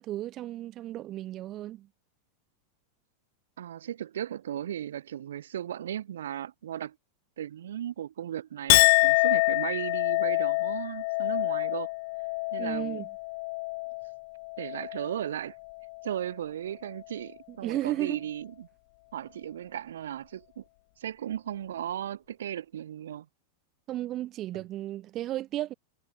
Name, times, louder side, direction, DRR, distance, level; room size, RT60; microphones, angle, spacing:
voice 1, 0.0-1.9 12.6-13.1 17.5-18.2 23.9-25.7, right 14 dB, 40° right, 2.6 m, -34 dB
voice 2, 3.6-7.0 7.4-11.9 12.5-13.0 14.6-15.6 16.0-18.7 19.1-20.6 21.0-23.3 24.5-24.6, right 10 dB, 75° right, 1.2 m, -36 dB
Chink clink, 8.7-15.3 15.6-16.2, left 25 dB, 60° left, 0.3 m, -26 dB
hypercardioid pair, 100°, 0 cm